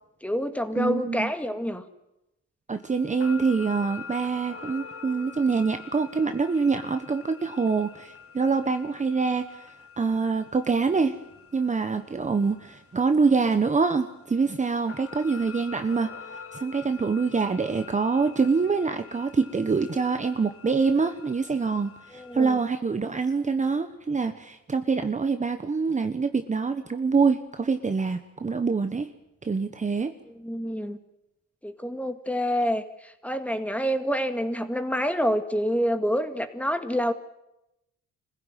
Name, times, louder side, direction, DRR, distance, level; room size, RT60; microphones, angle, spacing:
voice 1, 0.2-1.8 22.1-22.6 30.4-31.0 31.6-37.1, equal, 5° left, 7 dB, 2.1 m, -27 dB
voice 2, 0.8-1.3 2.7-9.7 10.0-11.2 11.5-16.1 16.5-29.1 29.4-30.1, right 4 dB, 25° right, 8 dB, 1.2 m, -25 dB
sound 1, 2.8-22.7, left 6 dB, 45° left, 2.0 m, -46 dB
25.0 x 15.5 x 9.3 m, 0.90 s
cardioid pair, 90°, 30 cm